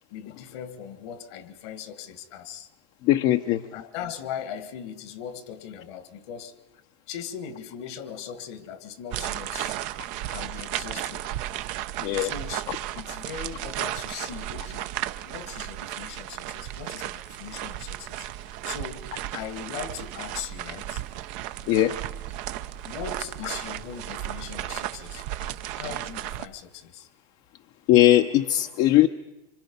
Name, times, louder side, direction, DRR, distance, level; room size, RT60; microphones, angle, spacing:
voice 1, 0.1-2.7 3.7-6.5 7.1-9.8 10.3-11.3 12.2-12.6 13.0-14.9 15.2-18.3 18.6-19.1 19.3-21.0 22.8-25.3 25.7-27.1, left 8 dB, 75° left, 1.8 m, -39 dB
voice 2, 3.0-3.6 12.0-12.3 21.7-22.0 27.9-29.1, left 14 dB, 60° left, 0.7 m, -19 dB
sound 1, 9.1-26.5, right 13 dB, 65° right, 0.7 m, -34 dB
25.5 x 25.5 x 5.4 m
supercardioid pair, 100°, 14 cm